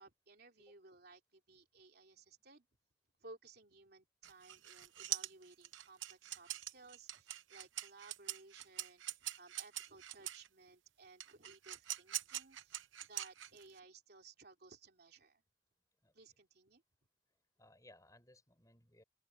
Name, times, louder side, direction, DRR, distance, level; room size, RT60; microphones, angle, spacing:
voice 1, 0.0-2.7 3.2-15.4 16.1-16.8, right 3 dB, 55° right, 3.1 m, -59 dB
sound 1, 4.2-10.5 11.2-13.8, right 14 dB, 90° right, 0.9 m, -43 dB
voice 2, 17.6-19.0, left 1 dB, 20° left, 5.4 m, -63 dB
open air
head